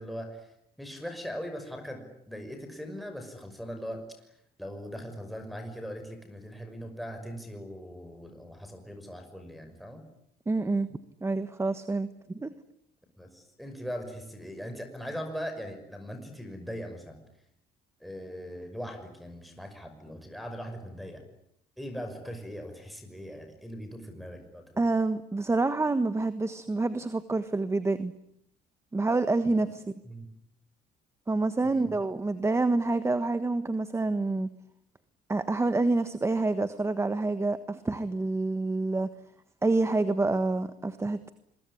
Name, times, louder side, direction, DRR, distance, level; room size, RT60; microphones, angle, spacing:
voice 1, 0.0-4.1 4.6-10.0 13.2-17.2 18.0-21.2 21.8-24.8 30.0-30.3 31.6-31.9, equal, ahead, 4 dB, 6.0 m, -40 dB
voice 2, 10.5-10.9 11.2-12.5 24.8-28.1 28.9-29.8 31.3-34.5 35.3-39.1 39.6-41.3, right 3 dB, 15° right, 11 dB, 1.4 m, -27 dB
26.0 x 22.5 x 9.9 m, 0.74 s
cardioid pair, 110°, 17 cm